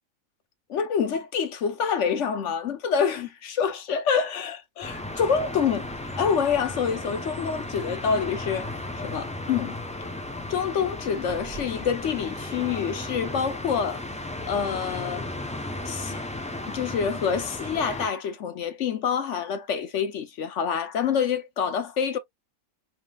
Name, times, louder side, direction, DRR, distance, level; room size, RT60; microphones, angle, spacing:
voice 1, 0.7-5.9 6.2-8.7 9.0-9.8 10.5-14.0 14.5-15.3 15.9-16.2 16.7-22.2, left 6 dB, 60° left, 1.0 m, -27 dB
sound 1, 4.8-18.1, left 1 dB, 10° left, 0.5 m, -35 dB
4.7 x 3.6 x 2.3 m
omnidirectional pair, 1.5 m